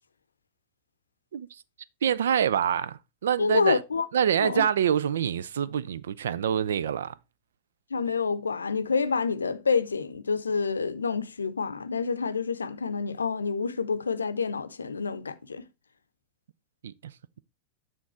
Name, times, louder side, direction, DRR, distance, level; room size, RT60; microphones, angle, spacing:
voice 1, 1.3-1.6 2.0-3.8 4.1-7.1 16.8-17.4, right 8 dB, 65° right, 0.4 m, -26 dB
voice 2, 3.4-4.1 4.4-4.6 7.9-15.7, left 5 dB, 75° left, 0.6 m, -28 dB
9.2 x 3.8 x 4.4 m
figure-of-eight pair, 90°, 0 cm